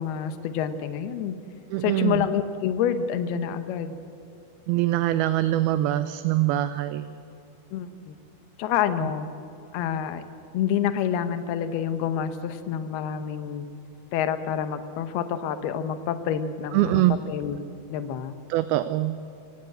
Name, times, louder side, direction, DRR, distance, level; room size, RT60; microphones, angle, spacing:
voice 1, 0.0-1.4 1.8-4.0 7.7-8.2 8.6-9.3 9.7-10.2 10.5-13.7 14.1-18.3, left 8 dB, 80° left, 9 dB, 3.0 m, -28 dB
voice 2, 1.7-2.3 4.7-7.2 16.7-17.2 18.5-19.2, right 15 dB, 80° right, 12 dB, 2.4 m, -23 dB
26.0 x 17.0 x 7.9 m, 2.8 s
omnidirectional pair, 4.6 m